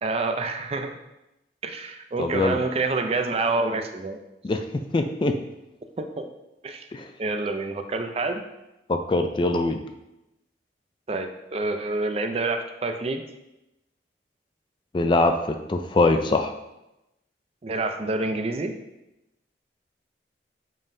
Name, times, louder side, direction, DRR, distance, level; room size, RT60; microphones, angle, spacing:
voice 1, 0.0-1.0 1.6-4.2 6.0-6.3 6.6-6.8 7.2-8.4 11.1-13.2 17.6-18.7, right 3 dB, 35° right, 6 dB, 0.4 m, -27 dB
voice 2, 2.2-2.6 4.4-4.6 4.9-5.3 6.9-7.1 8.9-9.8 14.9-16.5, left 2 dB, 25° left, 7 dB, 0.3 m, -23 dB
7.4 x 5.3 x 2.6 m, 0.93 s
head